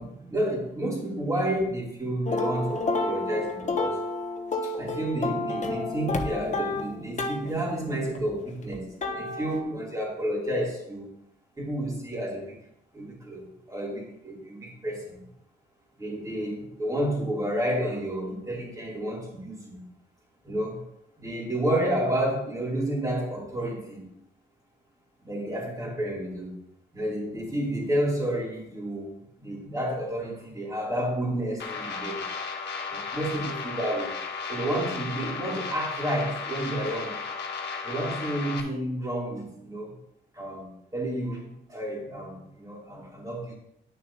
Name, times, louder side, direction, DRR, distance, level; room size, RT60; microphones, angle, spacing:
voice 1, 0.0-4.0 4.6-11.1 11.6-12.6 12.9-15.2 16.0-19.8 20.4-20.8 21.2-24.1 25.2-26.5 26.9-29.1 29.4-32.2 32.9-34.1 34.5-37.2 37.8-40.0 40.3-43.6, right 1 dB, 15° right, -2 dB, 2.8 m, -30 dB
sound 1, 2.3-7.5 8.1-9.6, left 2 dB, 35° left, 1.0 m, -30 dB
sound 2, 31.6-38.6, left 5 dB, 60° left, 1.5 m, -34 dB
11.0 x 6.3 x 2.8 m, 0.78 s
cardioid pair, 90°, 20 cm